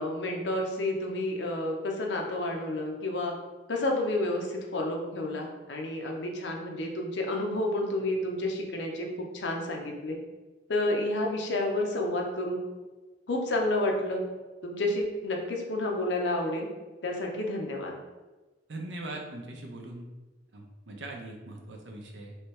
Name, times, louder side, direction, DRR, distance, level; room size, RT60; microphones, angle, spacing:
voice 1, 0.0-3.3 3.7-9.1 9.3-10.2 10.7-12.6 13.3-14.2 14.6-16.7 17.0-17.9, left 1 dB, 75° left, 1 dB, 0.7 m, -30 dB
voice 2, 18.7-20.1 20.5-22.4, right 2 dB, 75° right, 2 dB, 0.6 m, -41 dB
3.3 x 3.2 x 3.1 m, 1.2 s
head